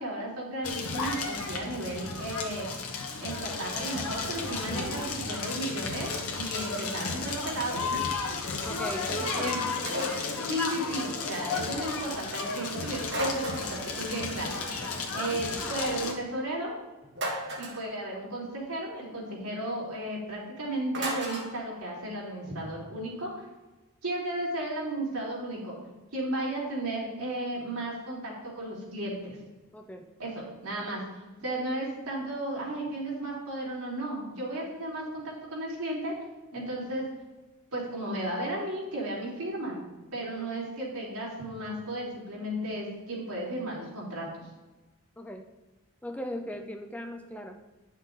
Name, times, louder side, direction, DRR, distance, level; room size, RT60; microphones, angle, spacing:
voice 1, 0.0-2.7 3.2-8.0 9.3-9.6 10.5-14.6 15.1-16.7 17.6-23.3 24.0-25.7 26.1-29.4 30.2-31.0 31.4-35.2 35.5-36.1 36.5-37.1 37.7-39.8 40.1-44.3, right 1 dB, 80° right, -4 dB, 3.3 m, -34 dB
Crackle, 0.6-16.1, left 4 dB, 75° left, 1.4 m, -33 dB
voice 2, 8.6-9.6 29.7-30.1 40.2-40.5 45.2-45.5 46.0-47.6, equal, 5° left, 4 dB, 0.5 m, -39 dB
sound 1, 9.9-10.4 13.1-13.9 17.1-17.8 20.9-21.5, equal, 50° right, 1.9 m, -33 dB
9.9 x 6.5 x 3.9 m, 1.1 s
head